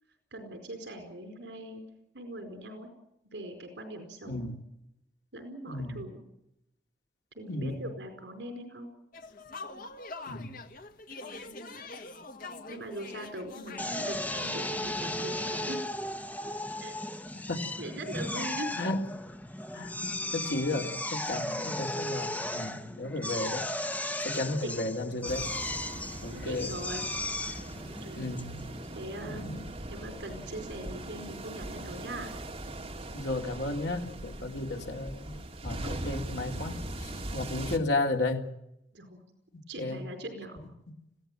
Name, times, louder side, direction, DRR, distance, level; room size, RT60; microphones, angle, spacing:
voice 1, 0.3-1.8 2.1-2.9 3.3-4.5 5.3-6.2 7.3-8.9 11.2-11.5 12.7-15.8 16.8-16.9 17.8-18.7 21.3-21.7 22.8-22.9 23.2-23.6 24.4-24.7 25.9-26.0 26.3-27.1 27.7-28.3 28.9-32.3 37.2-37.5 38.9-39.3 39.7-40.6, right 1 dB, 80° right, 6 dB, 4.7 m, -42 dB
voice 2, 5.7-6.0 7.5-7.8 10.3-10.5 17.5-17.6 18.4-18.5 18.7-19.1 19.7-23.7 24.2-25.4 26.2-26.7 28.2-28.5 29.2-29.6 33.1-35.4 35.6-38.5 39.8-40.0, left 2 dB, 70° left, 3 dB, 3.0 m, -33 dB
sound 1, 9.1-14.1, left 3 dB, 55° left, 1.8 m, -44 dB
Drill, 13.8-29.1, left 1 dB, 10° left, 1.1 m, -36 dB
sound 2, 25.3-37.8, right 1 dB, 35° right, 2.4 m, -40 dB
25.5 x 16.5 x 9.0 m, 0.85 s
head